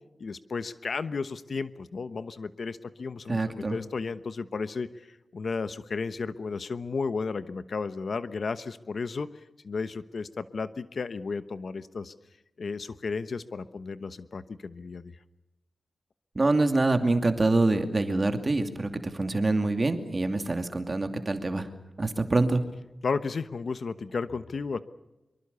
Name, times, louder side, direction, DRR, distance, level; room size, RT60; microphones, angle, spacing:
voice 1, 0.2-9.3 9.6-12.1 12.6-15.2 23.0-24.8, left 4 dB, 60° left, 13 dB, 1.1 m, -33 dB
voice 2, 3.3-3.8 16.3-21.7 22.0-22.6, right 2 dB, 30° right, 7 dB, 2.6 m, -25 dB
25.0 x 23.5 x 7.0 m, 0.99 s
wide cardioid pair, 140°, 0 cm